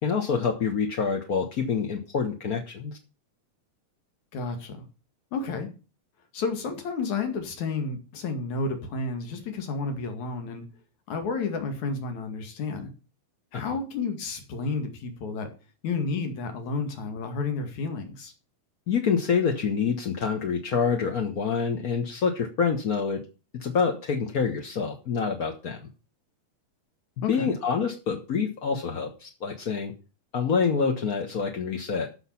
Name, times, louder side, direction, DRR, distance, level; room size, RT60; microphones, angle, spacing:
voice 1, 0.0-3.0 13.5-13.6 18.9-23.2 23.5-25.9 27.3-29.9 30.3-32.1, left 6 dB, 50° left, 3 dB, 1.1 m, -26 dB
voice 2, 4.3-4.8 5.3-5.7 6.3-10.6 11.1-12.9 13.5-15.5 15.8-18.3 27.2-27.5, left 4 dB, 75° left, 6 dB, 3.6 m, -31 dB
13.0 x 6.7 x 5.8 m, 0.33 s
omnidirectional pair, 3.4 m